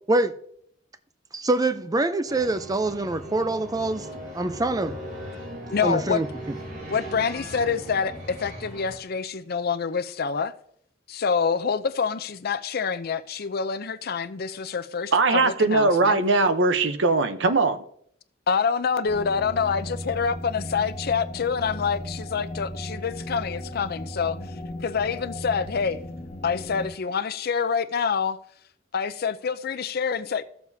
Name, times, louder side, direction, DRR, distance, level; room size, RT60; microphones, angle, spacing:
voice 1, 1.3-5.0 5.8-6.3, right 2 dB, 20° right, 0.5 m, -25 dB
sound 1, 2.3-9.0, equal, 45° right, 3.2 m, -39 dB
voice 2, 5.7-6.2 6.9-10.5 11.1-16.2 18.5-24.4 24.8-26.0 26.4-28.4 28.9-30.4, left 6 dB, 55° left, 0.5 m, -26 dB
voice 3, 15.1-17.8, right 3 dB, 70° right, 0.8 m, -20 dB
sound 2, 19.1-26.9, left 1 dB, 40° left, 1.5 m, -36 dB
15.5 x 7.1 x 2.7 m
head